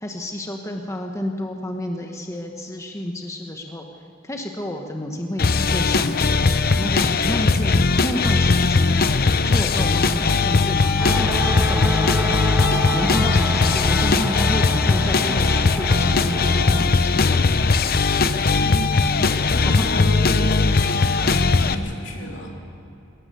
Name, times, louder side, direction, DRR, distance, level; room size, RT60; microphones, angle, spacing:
voice 1, 0.0-3.8 4.2-9.1 9.4-12.3 12.9-17.4 19.6-20.1, left 1 dB, 15° left, 2 dB, 1.2 m, -30 dB
sound 1, 5.4-21.7, left 4 dB, 50° left, 0.8 m, -19 dB
sound 2, 11.0-16.9, left 1 dB, 10° right, 0.9 m, -30 dB
voice 2, 18.5-18.9 19.5-22.6, right 1 dB, 75° left, 0 dB, 3.5 m, -33 dB
21.0 x 18.0 x 6.8 m, 2.9 s
head